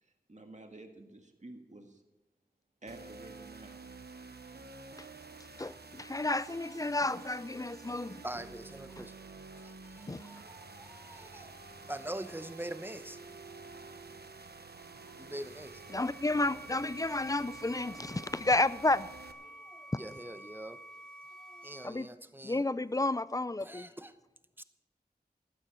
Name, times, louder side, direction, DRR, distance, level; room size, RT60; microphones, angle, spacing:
voice 1, 0.0-2.0 2.8-3.7, right 2 dB, 45° right, 1.8 m, -50 dB
sound 1, 2.9-19.3, right 3 dB, 85° right, 1.0 m, -50 dB
voice 2, 5.6-8.2 9.0-9.1 10.1-10.3 15.9-19.1 21.8-22.1 22.4-23.9, left 2 dB, 20° left, 0.4 m, -31 dB
voice 3, 8.2-9.1 9.6-11.5 11.9-13.2 15.2-15.8 20.0-20.8 21.6-22.6 23.6-24.1 24.6-24.7, right 1 dB, 15° right, 0.8 m, -43 dB
sound 2, 15.4-21.9, right 1 dB, 5° left, 1.3 m, -50 dB
15.0 x 12.0 x 4.4 m
wide cardioid pair, 55°, 16 cm